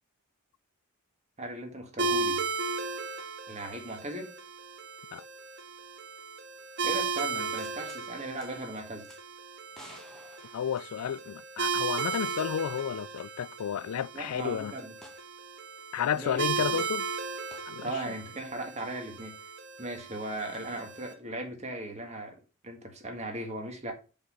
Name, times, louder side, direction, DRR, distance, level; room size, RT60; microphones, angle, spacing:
voice 1, 1.4-2.4 3.5-4.3 6.8-9.1 14.1-14.9 16.1-16.4 16.7-16.8 17.8-19.3 19.8-23.9, right 1 dB, 30° right, 1.7 m, -38 dB
sound 1, 2.0-21.1, right 4 dB, 50° right, 1.1 m, -36 dB
sound 2, 7.6-8.1 8.4-8.5 9.0-9.2 9.7-11.2 12.1-12.6 12.9-13.0 15.0-15.3 17.5-17.7 20.5-20.6, left 1 dB, ahead, 1.3 m, -53 dB
voice 2, 10.5-14.7 15.9-17.1 17.7-17.9, left 8 dB, 85° left, 0.4 m, -32 dB
6.3 x 5.5 x 5.5 m
head